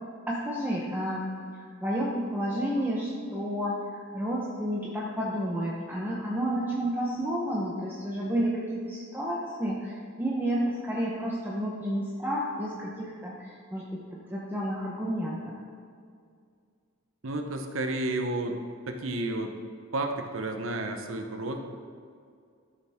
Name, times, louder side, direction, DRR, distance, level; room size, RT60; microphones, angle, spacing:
voice 1, 0.3-1.2 1.6-14.0 14.3-15.5, equal, 10° right, -4 dB, 0.9 m, -31 dB
voice 2, 17.2-18.6 18.9-19.5 19.9-21.6, right 2 dB, 70° right, 5 dB, 0.9 m, -31 dB
13.0 x 6.8 x 3.6 m, 2.2 s
head